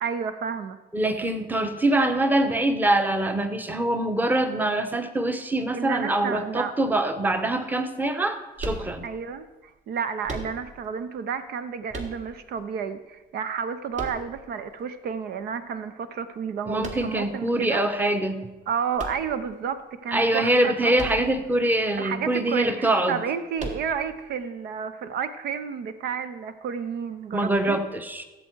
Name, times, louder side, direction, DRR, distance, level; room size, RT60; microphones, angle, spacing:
voice 1, 0.0-0.8 5.7-6.7 9.0-17.8 18.7-21.0 22.0-27.8, right 7 dB, 70° right, 11 dB, 0.7 m, -31 dB
voice 2, 0.9-9.0 16.7-18.5 20.1-23.2 27.3-28.2, right 1 dB, 10° right, 9 dB, 1.0 m, -24 dB
sound 1, 8.6-9.4 10.2-10.9 11.9-12.6 13.9-14.7 16.8-17.4 18.9-19.8 20.9-21.5 21.8-21.9 23.6-24.2, right 1 dB, 45° right, 1.8 m, -36 dB
15.5 x 7.6 x 4.6 m, 1.1 s
cardioid pair, 110°, 17 cm